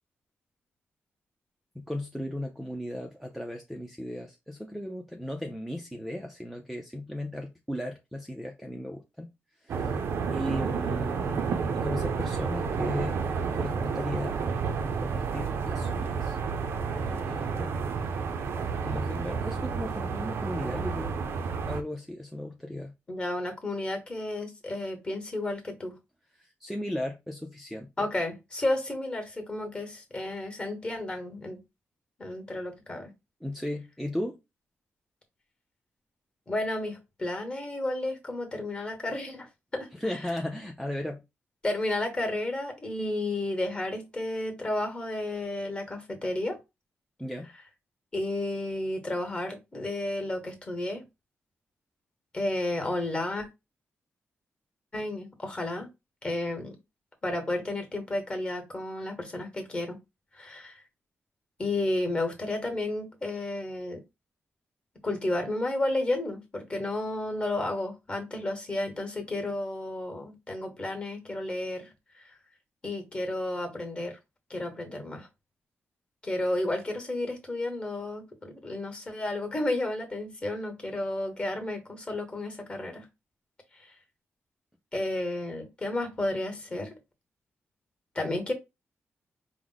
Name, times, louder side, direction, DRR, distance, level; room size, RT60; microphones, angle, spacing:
voice 1, 1.8-9.3 9.6-10.0 10.3-11.3 11.7-13.2 13.5-14.4 15.0-16.4 16.9-18.2 18.5-21.2 21.7-22.9 26.3-28.0 33.4-34.4 39.9-41.2 47.2-47.5, left 1 dB, ahead, 0.4 m, -36 dB
sound 1, 9.7-21.8, right 5 dB, 65° right, 0.5 m, -30 dB
voice 2, 23.1-25.9 28.0-31.6 32.2-33.1 36.5-39.5 39.7-40.2 41.6-46.6 48.1-51.0 52.3-53.5 54.9-55.9 56.2-56.8 57.2-60.0 60.3-60.8 61.6-64.0 65.0-71.9 72.1-72.4 72.8-74.2 74.5-75.3 76.2-83.1 83.8-83.9 84.9-87.0 88.1-88.5, left 1 dB, 25° left, 1.1 m, -32 dB
4.6 x 2.1 x 3.8 m
wide cardioid pair, 165°, 4 cm